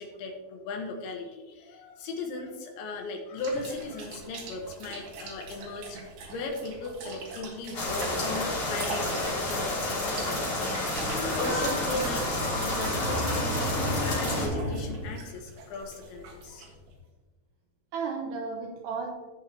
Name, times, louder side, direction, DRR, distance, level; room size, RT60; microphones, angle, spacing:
voice 1, 0.0-10.0 11.1-16.7, left 3 dB, 75° left, 2 dB, 3.4 m, -37 dB
sound 1, 3.4-16.9, right 3 dB, 60° right, 3.1 m, -43 dB
sound 2, 7.7-14.5, left 2 dB, 35° left, 3.7 m, -30 dB
sound 3, 10.8-15.2, equal, 35° right, 2.6 m, -33 dB
voice 2, 11.4-12.0 14.1-14.2 17.9-19.1, right 4 dB, 80° right, 0 dB, 2.4 m, -34 dB
16.5 x 5.8 x 2.9 m, 1.2 s
omnidirectional pair, 5.7 m